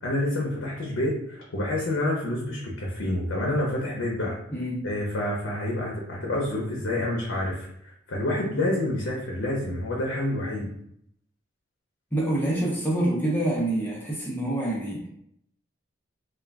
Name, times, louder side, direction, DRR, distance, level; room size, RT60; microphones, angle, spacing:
voice 1, 0.0-4.4 4.8-10.7, left 1 dB, 70° left, -3 dB, 0.6 m, -28 dB
voice 2, 12.1-15.1, right 1 dB, 10° left, -4 dB, 0.5 m, -26 dB
2.3 x 2.2 x 3.4 m, 0.71 s
head